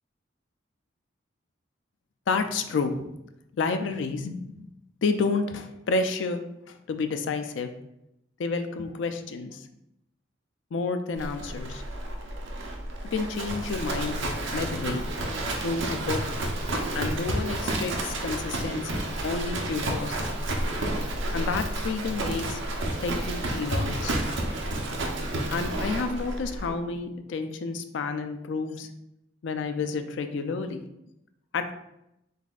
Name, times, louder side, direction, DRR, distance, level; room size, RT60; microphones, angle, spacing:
voice 1, 2.3-3.1 3.6-4.7 5.0-7.7 8.4-9.7 10.7-11.8 13.1-14.2 14.5-15.1 15.6-16.2 16.9-20.3 21.3-22.6 23.0-24.1 25.5-28.9 29.4-30.8 31.5-31.7, left 4 dB, 75° left, 8 dB, 0.4 m, -30 dB
Livestock farm animals working animals, 11.2-26.7, right 1 dB, 75° right, 0.6 m, -30 dB
4.0 x 3.5 x 2.4 m, 0.85 s
head